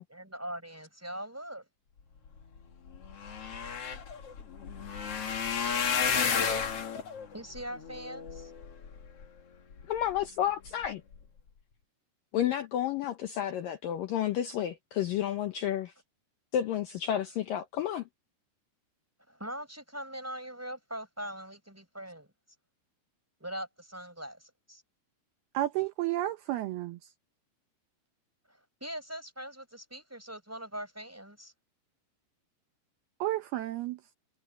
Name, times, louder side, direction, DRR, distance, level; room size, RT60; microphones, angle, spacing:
voice 1, 0.0-1.6 7.3-8.5 19.3-22.3 23.4-24.8 28.5-31.5, right 1 dB, 5° right, 3.9 m, -41 dB
sound 1, 2.6-2.7 2.9-9.2 9.8-10.2 10.7-10.9 11.1-11.2, left 6 dB, 45° left, 2.2 m, -32 dB
voice 2, 9.9-11.0 12.3-15.9 16.5-18.0, left 11 dB, 75° left, 2.2 m, -31 dB
voice 3, 25.5-27.0 33.2-34.0, right 15 dB, 75° right, 2.4 m, -31 dB
omnidirectional pair, 5.1 m